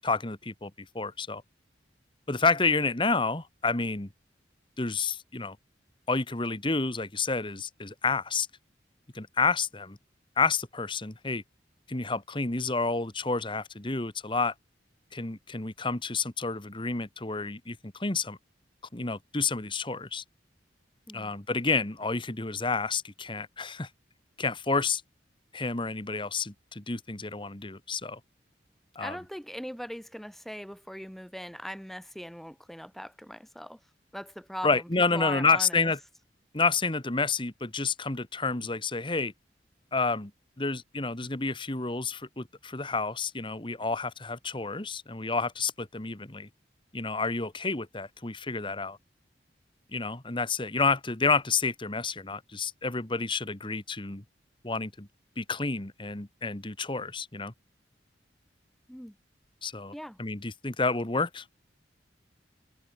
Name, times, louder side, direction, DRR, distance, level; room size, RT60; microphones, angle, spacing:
voice 1, 0.0-0.7 0.9-1.4 2.3-4.1 4.8-5.6 6.1-8.5 9.1-10.0 10.4-11.4 11.9-14.5 15.1-18.4 18.9-20.2 21.1-23.9 24.4-25.0 25.5-28.2 28.9-29.2 34.6-36.0 36.5-39.3 39.9-40.3 40.6-46.5 46.9-49.0 49.9-54.2 54.6-55.1 55.4-57.5 59.6-59.9 60.2-61.4, left 4 dB, 25° left, 1.7 m, -29 dB
voice 2, 29.0-33.8 34.1-35.9 58.9-59.2 59.9-60.2, equal, ahead, 2.5 m, -40 dB
head